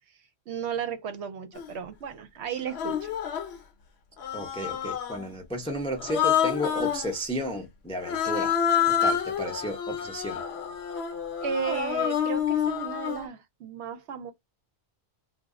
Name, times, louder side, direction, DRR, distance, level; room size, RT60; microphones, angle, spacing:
voice 1, 0.5-3.1 11.4-14.3, right 7 dB, 70° right, 0.8 m, -34 dB
Human voice, 1.5-1.7 2.7-3.6 4.2-5.3 6.0-7.1 8.0-13.3, left 8 dB, 65° left, 0.8 m, -28 dB
voice 2, 4.3-8.5 9.0-10.4, equal, 5° left, 0.5 m, -33 dB
2.2 x 2.0 x 3.6 m
omnidirectional pair, 1.3 m